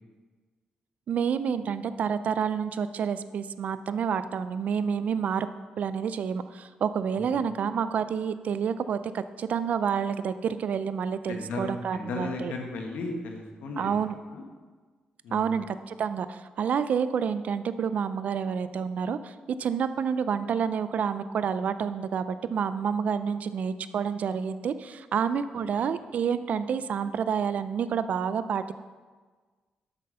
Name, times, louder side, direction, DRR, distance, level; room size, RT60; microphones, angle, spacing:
voice 1, 1.1-5.5 5.8-12.5 13.8-14.2 15.3-28.7, right 7 dB, 65° right, 13 dB, 0.4 m, -29 dB
voice 2, 11.3-13.9 14.3-14.4 15.2-15.5 25.8-25.9, left 3 dB, 85° left, 2 dB, 1.4 m, -35 dB
8.3 x 6.5 x 5.5 m, 1.4 s
cardioid pair, 80°, 3 cm